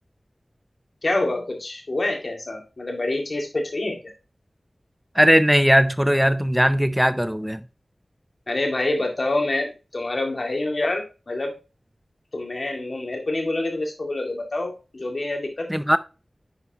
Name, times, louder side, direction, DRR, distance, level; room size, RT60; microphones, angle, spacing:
voice 1, 1.0-4.0 8.5-11.5 12.3-15.7, left 2 dB, 60° left, 2.1 m, -26 dB
voice 2, 5.1-7.6 15.7-16.0, equal, 5° right, 0.6 m, -18 dB
9.4 x 5.1 x 2.8 m
wide cardioid pair, 70°, 0 cm